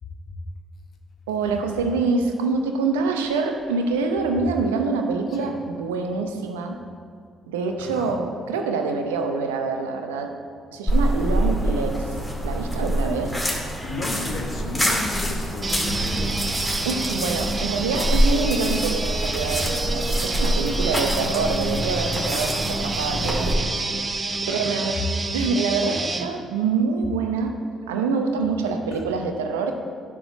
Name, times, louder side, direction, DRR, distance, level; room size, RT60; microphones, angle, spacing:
voice 1, 1.3-6.8 7.5-10.3 10.7-12.2 12.4-13.3 16.8-23.8 24.1-24.9 25.3-27.5 27.9-29.7, right 4 dB, 90° right, 4 dB, 0.6 m, -25 dB
voice 2, 7.8-8.1 13.0-13.2 13.8-16.4 24.3-24.9 28.6-29.0, left 2 dB, 55° left, 1 dB, 1.3 m, -34 dB
sound 1, 10.9-23.5, equal, 10° left, 2.3 m, -25 dB
sound 2, 15.6-26.3, right 3 dB, 35° right, 0.7 m, -28 dB
10.5 x 3.7 x 5.9 m, 2.2 s
hypercardioid pair, 45°, 0 cm